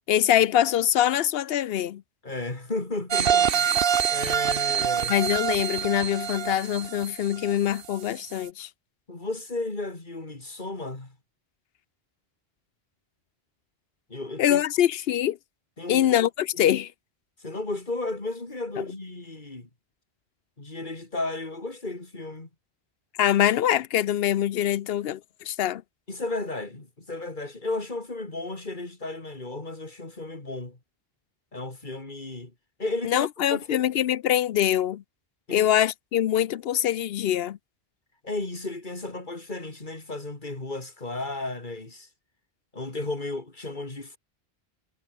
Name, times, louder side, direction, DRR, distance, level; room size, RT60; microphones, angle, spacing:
voice 1, 0.1-2.0 5.1-8.7 14.4-15.4 15.9-16.9 18.8-18.9 23.2-25.8 33.0-35.0 35.5-37.6, left 11 dB, 70° left, 0.8 m, -24 dB
voice 2, 2.2-3.5 4.1-5.1 9.1-11.2 14.1-14.6 15.8-16.3 16.5-16.8 17.4-19.7 20.6-22.5 26.1-30.8 31.5-32.5 32.8-33.9 35.5-35.7 38.2-42.1 42.7-44.2, left 2 dB, 50° left, 3.5 m, -34 dB
sound 1, 3.1-7.9 8.3-8.4, right 8 dB, 65° right, 1.1 m, -25 dB
omnidirectional pair, 1.1 m